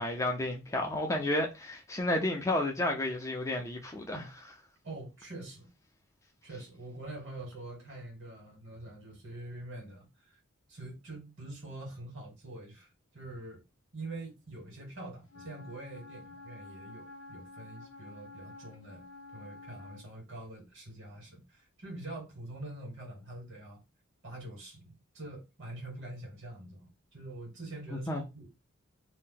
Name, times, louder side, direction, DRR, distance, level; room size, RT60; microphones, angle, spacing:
voice 1, 0.0-4.5 27.9-28.2, left 1 dB, 15° left, 0.4 m, -32 dB
voice 2, 4.8-5.7 6.4-10.4 10.7-13.6 13.9-19.0 19.3-23.8 24.2-28.5, right 2 dB, 55° right, 1.5 m, -45 dB
Wind instrument woodwind instrument, 15.3-20.1, left 3 dB, 65° left, 0.7 m, -50 dB
2.7 x 2.1 x 3.7 m
head